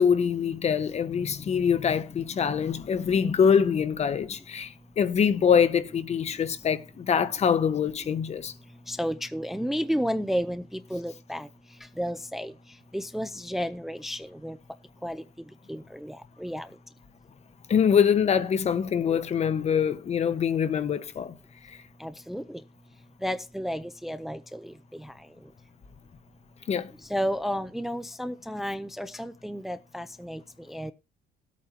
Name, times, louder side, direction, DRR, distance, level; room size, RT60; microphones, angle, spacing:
voice 1, 0.0-8.5 17.7-21.3 21.7-21.8 26.7-26.9, left 7 dB, 40° left, 0.9 m, -24 dB
voice 2, 8.9-11.5 12.0-12.5 12.9-14.6 15.0-15.2 15.7-16.7 22.0-22.6 23.2-24.7 27.1-30.4 30.7-30.9, equal, ahead, 0.5 m, -32 dB
18.5 x 8.5 x 2.8 m
cardioid pair, 110°, 17 cm